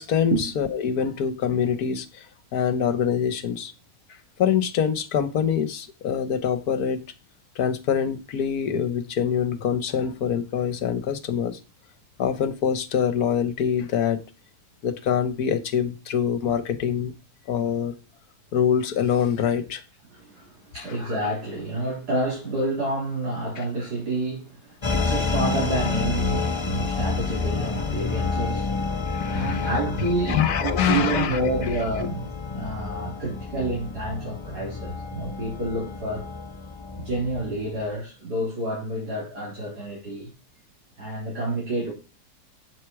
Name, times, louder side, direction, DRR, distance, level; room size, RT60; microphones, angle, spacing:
voice 1, 0.0-2.3 2.5-3.7 4.4-7.0 7.6-11.6 12.2-14.2 14.8-17.1 17.5-17.9 18.5-19.8 20.8-20.9 23.6-23.7 29.0-29.7 30.3-31.4, left 8 dB, 70° left, 1.4 m, -25 dB
voice 2, 20.1-28.7 29.3-36.3 37.0-40.3 41.0-41.9, right 1 dB, 75° right, 4.7 m, -29 dB
sound 1, 24.8-37.8, left 4 dB, 25° left, 0.7 m, -29 dB
7.9 x 7.7 x 4.7 m
omnidirectional pair, 1.7 m